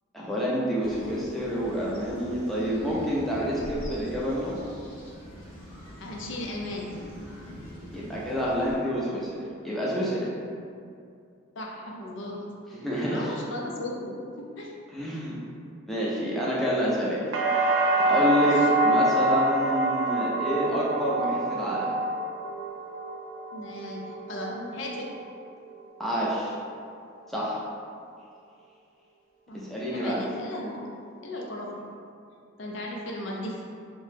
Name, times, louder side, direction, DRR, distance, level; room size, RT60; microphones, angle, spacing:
voice 1, 0.1-4.6 7.9-10.3 12.7-13.3 14.9-15.3 15.9-17.2 17.9-21.9 26.0-26.5 27.3-27.6 29.6-30.2, equal, ahead, -8 dB, 0.5 m, -28 dB
sound 1, 0.8-8.8, equal, 85° left, 0.9 m, -43 dB
voice 2, 6.0-7.0 11.6-12.4 13.1-14.7 18.6-18.7 23.5-25.1 29.5-30.9 31.2-31.8 32.6-33.6, left 1 dB, 65° left, -1 dB, 0.4 m, -36 dB
sound 2, 17.3-25.2 25.6-26.3, right 2 dB, 75° right, 0.4 m, -26 dB
2.8 x 2.1 x 3.3 m, 2.4 s
head